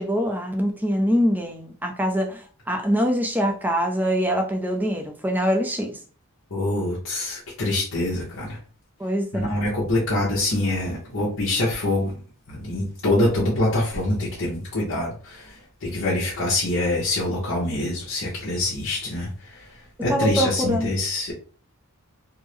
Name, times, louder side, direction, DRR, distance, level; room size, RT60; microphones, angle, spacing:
voice 1, 0.0-6.0 9.0-9.5 20.1-20.9, equal, 10° right, 4 dB, 0.4 m, -24 dB
voice 2, 6.5-8.6 9.3-12.1 12.5-15.5 15.8-19.6 20.0-21.3, left 1 dB, 60° left, -6 dB, 1.0 m, -25 dB
3.5 x 2.1 x 3.2 m, 0.40 s
head